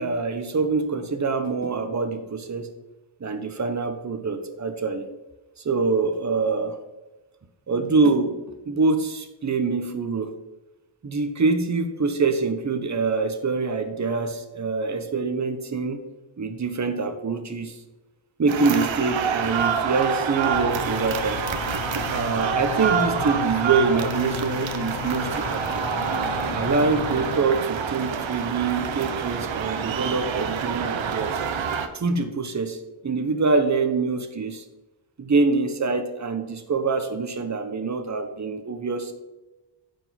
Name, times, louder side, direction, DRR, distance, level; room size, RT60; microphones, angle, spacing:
voice 1, 0.0-2.7 3.2-5.1 5.6-6.8 7.7-10.3 11.0-16.0 16.4-17.8 18.4-21.4 22.1-25.8 26.5-31.4 31.9-34.6 35.2-39.1, right 4 dB, 40° right, 8 dB, 1.2 m, -25 dB
sound 1, 18.5-31.9, right 7 dB, 80° right, 1.0 m, -27 dB
sound 2, 20.5-27.4, left 6 dB, 75° left, 1.1 m, -33 dB
9.8 x 5.3 x 5.9 m, 1.1 s
wide cardioid pair, 130°, 45 cm